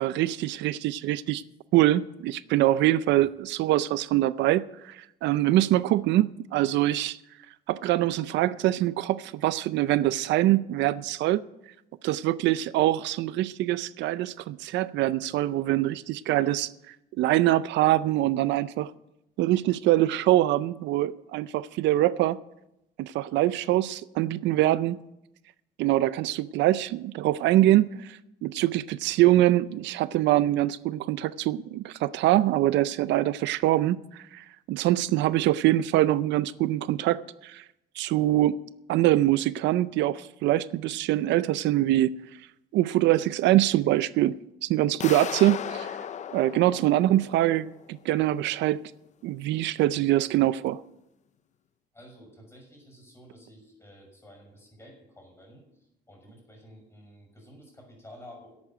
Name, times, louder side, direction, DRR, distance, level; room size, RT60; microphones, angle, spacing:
voice 1, 0.0-1.4 1.7-7.2 7.7-11.4 12.0-16.7 17.2-18.9 19.4-22.4 23.0-25.0 25.8-37.6 38.0-38.6 38.9-42.1 42.7-44.4 44.6-45.9 46.3-48.8 49.2-50.8, right 15 dB, 85° right, 0.5 m, -24 dB
sound 1, 45.0-47.8, left 8 dB, 40° left, 0.5 m, -36 dB
voice 2, 51.9-58.6, equal, 15° left, 6.0 m, -51 dB
11.0 x 8.6 x 9.0 m
cardioid pair, 130°, 18 cm